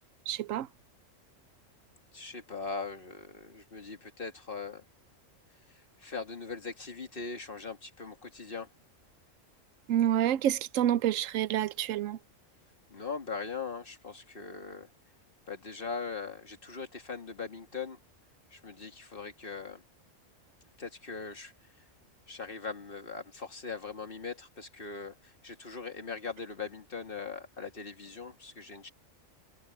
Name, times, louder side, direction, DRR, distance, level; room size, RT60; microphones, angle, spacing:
voice 1, 0.3-0.7 9.9-12.2, right 11 dB, 90° right, 1.0 m, -28 dB
voice 2, 2.1-4.8 5.7-8.7 12.9-14.9 15.5-18.0 18.5-19.8 20.8-21.5 22.3-28.9, left 4 dB, 45° left, 2.3 m, -40 dB
omnidirectional pair, 1.3 m